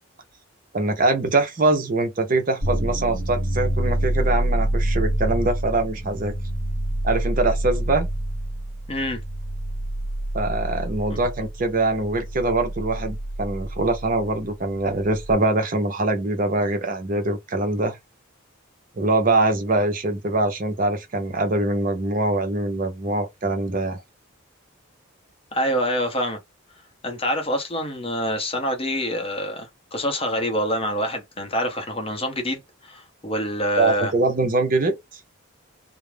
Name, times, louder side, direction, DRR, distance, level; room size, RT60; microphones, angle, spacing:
voice 1, 0.7-6.3 7.0-8.1 10.3-18.0 19.0-24.0 33.8-34.9, right 2 dB, 40° right, 0.6 m, -23 dB
sound 1, 2.6-15.3, right 1 dB, 60° right, 1.1 m, -27 dB
voice 2, 8.9-9.2 25.5-26.4 27.0-34.1, equal, 25° left, 0.7 m, -26 dB
2.4 x 2.0 x 3.2 m
head